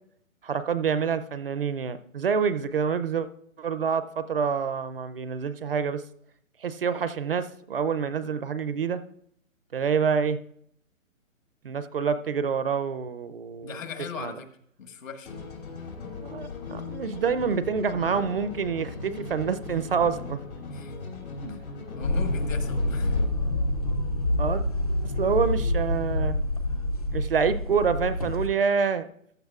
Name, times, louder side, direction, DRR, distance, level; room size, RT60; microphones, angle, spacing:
voice 1, 0.4-3.3 3.6-6.0 6.6-9.0 9.7-10.4 11.6-13.8 14.2-14.3 16.2-20.4 21.4-21.6 24.4-24.6 25.2-26.4 27.1-29.1, right 6 dB, 45° right, 13 dB, 0.5 m, -27 dB
voice 2, 13.6-14.5 14.8-15.3 20.7-20.9 21.5-21.6 22.0-23.2, left 6 dB, 70° left, 6 dB, 1.6 m, -38 dB
sound 1, 15.3-23.3, left 3 dB, 85° left, 2.9 m, -38 dB
sound 2, 22.0-28.5, left 1 dB, 30° left, 0.4 m, -27 dB
14.5 x 11.0 x 2.4 m, 0.70 s
hypercardioid pair, 155°, 41 cm